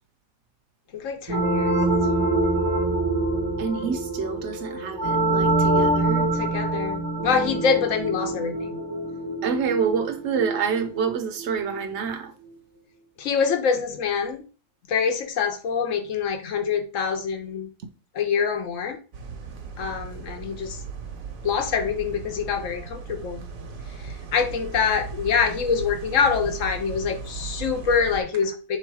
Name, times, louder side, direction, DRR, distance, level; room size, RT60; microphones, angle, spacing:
voice 1, 0.9-1.8 6.3-8.7 13.2-14.4 14.9-17.7 18.1-19.0 19.8-20.8 21.4-23.4 24.0-28.8, left 6 dB, 70° left, 1.1 m, -25 dB
sound 1, 1.3-11.7, right 2 dB, 25° right, 0.6 m, -25 dB
voice 2, 3.6-6.3 9.4-12.3 17.8-17.9, right 6 dB, 65° right, 0.8 m, -27 dB
sound 2, 19.1-28.2, right 4 dB, 85° right, 1.2 m, -37 dB
3.4 x 3.1 x 4.6 m
omnidirectional pair, 1.4 m